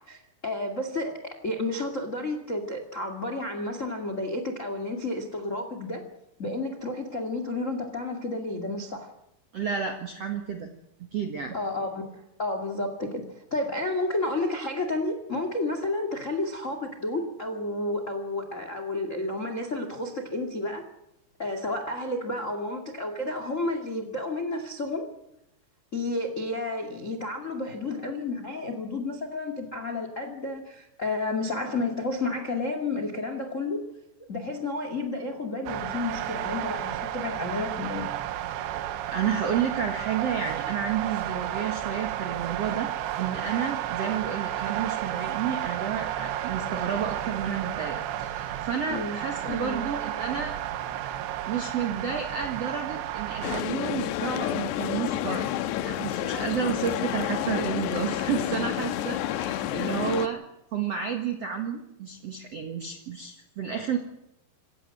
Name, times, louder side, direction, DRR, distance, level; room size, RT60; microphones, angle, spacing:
voice 1, 0.1-6.0 6.4-9.1 11.5-13.2 13.5-20.9 21.4-25.1 25.9-33.9 34.3-38.1 48.9-49.8, left 2 dB, 25° left, 7 dB, 1.6 m, -31 dB
voice 2, 9.5-10.7 11.1-11.5 39.1-42.9 43.2-50.5 51.4-55.5 55.8-60.4 60.7-64.0, right 7 dB, 50° right, 4 dB, 2.0 m, -31 dB
sound 1, 35.7-53.6, right 12 dB, 80° right, 3.3 m, -32 dB
sound 2, 53.4-60.3, left 12 dB, 80° left, 3.2 m, -29 dB
27.5 x 15.5 x 7.7 m, 0.84 s
omnidirectional pair, 5.0 m